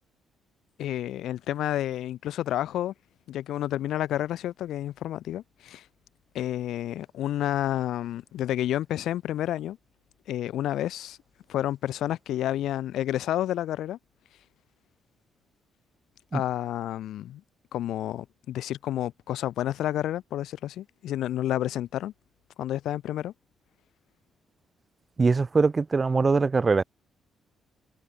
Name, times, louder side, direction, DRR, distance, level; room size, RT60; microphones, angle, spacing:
voice 1, 0.8-2.9 3.3-5.8 6.3-9.8 10.3-11.2 11.5-14.0 16.3-17.4 17.7-22.1 22.6-23.3, left 12 dB, 80° left, 7.8 m, -30 dB
voice 2, 25.2-26.8, right 4 dB, 30° right, 4.6 m, -22 dB
cardioid pair, 90°, 0 cm